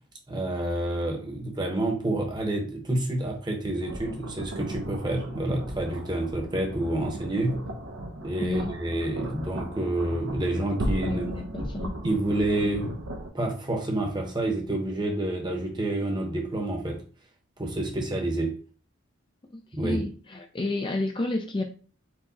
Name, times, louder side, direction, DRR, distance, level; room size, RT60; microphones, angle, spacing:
voice 1, 0.3-7.6 8.2-11.3 11.6-11.7 12.0-13.0 13.3-17.0 17.6-18.6 19.7-20.1, right 1 dB, 20° right, 0.9 m, -28 dB
sound 1, 3.8-13.3, right 1 dB, 80° right, 0.8 m, -36 dB
voice 2, 8.4-8.7 11.0-12.0 19.5-21.6, left 2 dB, 25° left, 0.4 m, -31 dB
4.6 x 2.3 x 4.0 m
head